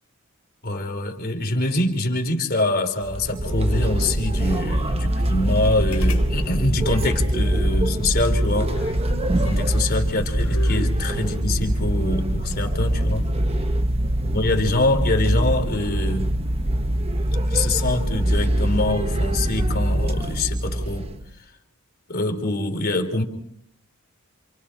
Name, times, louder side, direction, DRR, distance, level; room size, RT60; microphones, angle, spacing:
voice 1, 0.6-8.7 9.4-13.3 14.2-16.3 17.5-21.1 22.1-23.2, left 2 dB, 45° left, 3 dB, 3.3 m, -24 dB
sound 1, 3.0-21.3, right 1 dB, 30° right, 1.1 m, -23 dB
sound 2, 5.9-6.3 6.5-6.6 8.5-9.8 10.4-11.0 12.3-13.5 15.3-15.6 17.5-17.9 18.4-18.9 20.2-20.6, left 3 dB, 80° left, 1.7 m, -39 dB
28.5 x 27.5 x 4.4 m, 0.67 s
head